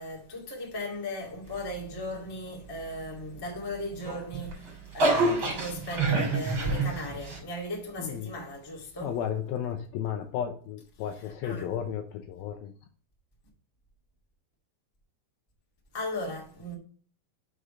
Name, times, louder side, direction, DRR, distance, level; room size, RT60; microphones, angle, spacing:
voice 1, 0.0-9.1 11.4-11.7 15.9-16.7, left 1 dB, 20° left, 0.6 m, -37 dB
sound 1, 3.9-7.4, right 2 dB, 35° right, 2.9 m, -27 dB
voice 2, 8.0-8.3 9.0-12.7, left 9 dB, 80° left, 2.3 m, -33 dB
6.5 x 4.9 x 5.5 m
omnidirectional pair, 4.9 m